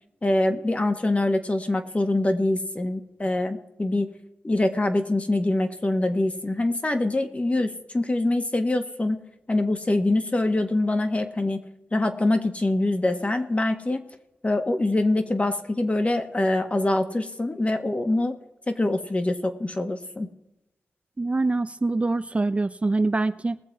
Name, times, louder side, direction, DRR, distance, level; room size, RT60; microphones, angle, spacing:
voice 1, 0.2-4.1 4.4-9.2 9.5-11.6 11.9-14.0 14.4-18.4 18.7-20.3, left 2 dB, 30° left, 7 dB, 1.6 m, -24 dB
voice 2, 21.2-23.6, right 3 dB, 25° right, 11 dB, 0.4 m, -24 dB
20.5 x 7.3 x 4.7 m, 0.92 s
cardioid pair, 60°, 5 cm